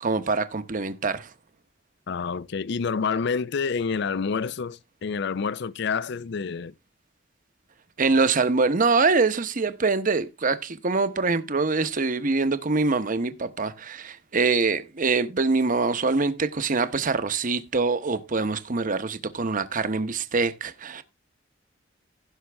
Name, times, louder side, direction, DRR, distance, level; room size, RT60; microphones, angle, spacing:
voice 1, 0.0-1.3 8.0-21.0, right 4 dB, 45° right, 0.9 m, -24 dB
voice 2, 2.1-6.7, left 5 dB, 60° left, 0.5 m, -28 dB
16.5 x 5.8 x 3.4 m
head